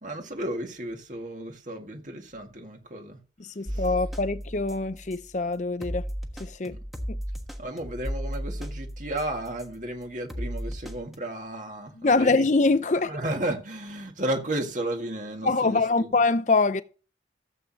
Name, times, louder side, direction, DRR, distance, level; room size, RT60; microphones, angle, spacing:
voice 1, 0.0-3.2 3.7-3.9 6.6-6.8 7.6-12.5 12.9-16.2, right 1 dB, 45° right, 1.9 m, -33 dB
voice 2, 3.4-6.0 6.4-6.8 7.1-7.2 12.0-13.1 15.4-16.8, left 3 dB, 40° left, 0.6 m, -24 dB
sound 1, 3.7-5.3 5.8-9.8 10.3-11.2, equal, ahead, 1.3 m, -35 dB
15.5 x 8.2 x 2.8 m
head